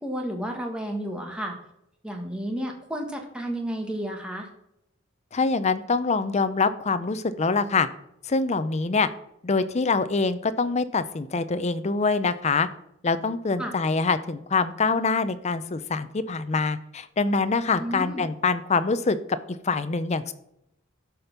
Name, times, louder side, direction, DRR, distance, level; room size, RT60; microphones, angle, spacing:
voice 1, 0.0-1.5 2.0-4.5 13.6-13.7 17.8-18.2, equal, 5° right, 2 dB, 1.6 m, -32 dB
voice 2, 5.3-7.9 8.2-9.1 9.4-12.7 13.0-19.2 19.6-20.3, left 4 dB, 35° left, 13 dB, 0.6 m, -24 dB
12.5 x 5.2 x 5.8 m, 0.80 s
head